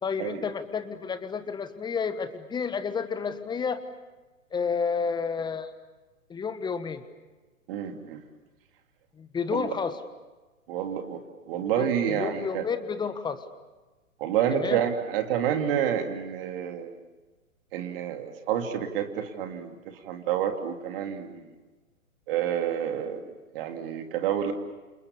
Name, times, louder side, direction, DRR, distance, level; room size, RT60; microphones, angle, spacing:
voice 1, 0.0-3.8 4.5-5.7 6.3-7.0 9.2-9.9 11.8-13.4 14.5-14.8, left 5 dB, 10° left, 11 dB, 1.4 m, -30 dB
voice 2, 7.7-8.2 9.5-9.7 10.7-11.2 11.5-12.6 14.2-17.0 17.7-21.4 22.3-23.2 23.5-24.5, right 9 dB, 40° right, 5 dB, 2.8 m, -29 dB
29.0 x 28.5 x 7.0 m, 1.2 s
figure-of-eight pair, 120°, 42 cm